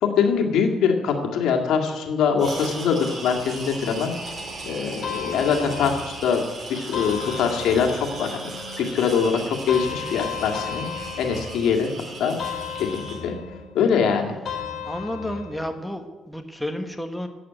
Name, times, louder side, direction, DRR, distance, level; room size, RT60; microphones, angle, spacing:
voice 1, 0.0-4.1 4.7-6.4 6.7-8.5 8.8-10.9 11.2-11.9 12.2-12.4 12.8-13.4 13.7-14.4, left 6 dB, 80° left, 3 dB, 1.9 m, -23 dB
sound 1, 2.4-13.2, right 2 dB, 40° right, 4.2 m, -37 dB
sound 2, 2.7-15.8, left 1 dB, 65° right, 2.7 m, -45 dB
sound 3, 5.0-6.3 6.9-8.2 9.7-11.9 12.4-13.7 14.4-15.7, left 8 dB, 60° left, 4.3 m, -34 dB
voice 2, 14.8-17.3, left 1 dB, 5° left, 5 dB, 1.4 m, -31 dB
11.0 x 8.7 x 9.1 m, 1.2 s
cardioid pair, 90°, 0 cm